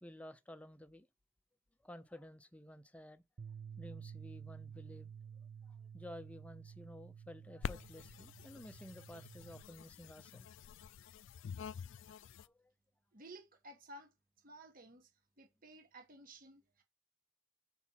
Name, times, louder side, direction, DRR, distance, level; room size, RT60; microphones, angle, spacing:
voice 1, 0.0-1.1 1.8-3.2 3.8-5.1 5.7-10.5 12.3-12.7, left 1 dB, 5° left, 0.5 m, -53 dB
Bass guitar, 3.4-9.6, right 7 dB, 65° right, 0.5 m, -52 dB
sound 1, 7.6-12.5, left 7 dB, 65° left, 0.3 m, -48 dB
voice 2, 13.1-14.1 14.4-15.1 15.4-16.8, right 1 dB, 45° right, 1.4 m, -55 dB
6.0 x 4.3 x 5.7 m
head